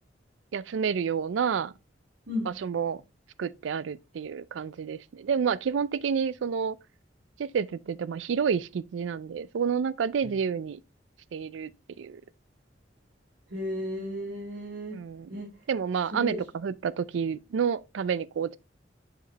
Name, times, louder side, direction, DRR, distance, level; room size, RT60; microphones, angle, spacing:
voice 1, 0.5-1.7 2.5-3.0 3.4-6.8 7.4-10.8 11.3-11.7 12.0-12.2 14.9-15.4 15.7-18.6, right 6 dB, 85° right, 0.4 m, -29 dB
voice 2, 13.5-15.0 15.3-15.5 16.1-16.4, left 1 dB, 65° right, 2.3 m, -33 dB
6.9 x 5.1 x 2.9 m
head